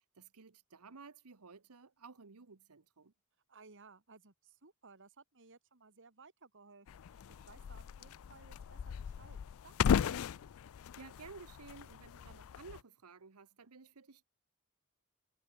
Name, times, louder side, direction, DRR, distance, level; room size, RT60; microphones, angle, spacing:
voice 1, 0.0-3.1 10.8-14.2, right 4 dB, 90° right, 1.1 m, -55 dB
voice 2, 3.5-9.4 9.6-10.3, right 4 dB, 60° right, 2.6 m, -60 dB
sound 1, 6.9-12.8, left 7 dB, 65° left, 0.4 m, -37 dB
head